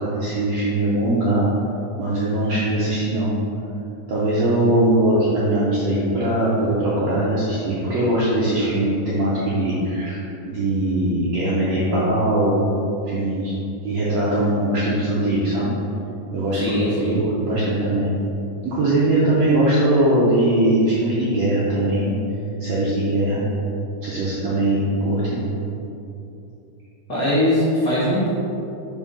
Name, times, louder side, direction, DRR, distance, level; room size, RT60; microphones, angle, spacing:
voice 1, 0.0-1.5 2.0-3.4 4.1-10.2 10.5-12.6 13.1-13.5 13.8-15.7 16.3-18.1 18.6-22.2 22.6-23.4 24.0-25.4, right 1 dB, 75° right, -8 dB, 1.5 m, -21 dB
voice 2, 16.5-17.2 27.1-28.3, left 1 dB, 80° left, -11 dB, 0.9 m, -21 dB
5.4 x 3.7 x 5.5 m, 2.8 s
omnidirectional pair, 4.1 m